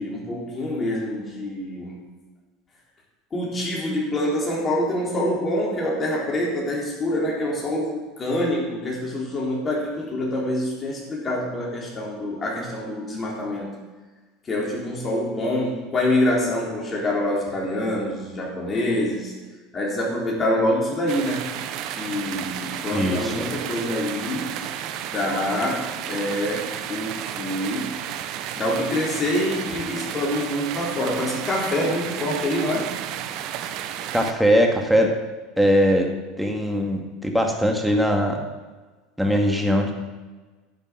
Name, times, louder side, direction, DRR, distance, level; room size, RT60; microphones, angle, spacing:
voice 1, 0.0-2.0 3.3-13.8 14.4-19.3 19.7-21.4 21.9-24.5 25.1-27.9 28.6-32.9, left 1 dB, 25° left, -3 dB, 3.9 m, -26 dB
sound 1, 21.1-34.3, right 10 dB, 60° right, 0.9 m, -32 dB
voice 2, 22.9-23.3 34.1-35.1 35.6-36.1 36.4-38.4 39.2-39.9, equal, ahead, 2 dB, 2.1 m, -20 dB
11.0 x 6.9 x 7.5 m, 1.3 s
supercardioid pair, 110°, 0 cm